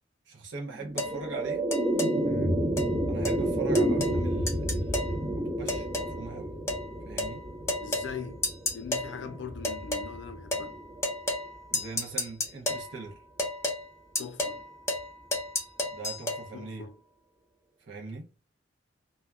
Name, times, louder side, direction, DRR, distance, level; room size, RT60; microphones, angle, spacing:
voice 1, 0.3-1.7 3.1-5.2 5.4-6.5 7.0-7.4 11.7-13.2 15.9-16.9 17.9-18.3, right 4 dB, 75° right, 0.6 m, -41 dB
sound 1, 0.7-11.2, right 1 dB, 30° right, 0.7 m, -30 dB
sound 2, 1.0-1.2 1.7-2.1 2.8-2.9 3.3-3.4 3.8-4.2 4.5-5.1 5.7-6.2 6.7-6.8 7.2-7.4 7.7-8.1 8.4-9.1 9.6-10.1 10.5-10.7 11.0-11.5 11.7-12.9 13.4-13.8 14.2-14.6 14.9-15.1 15.3-16.4, left 2 dB, 15° left, 0.6 m, -31 dB
voice 2, 2.2-2.6 7.8-8.4 8.7-10.8 14.2-14.6 16.5-17.0, left 6 dB, 70° left, 0.4 m, -41 dB
2.2 x 2.0 x 3.4 m
head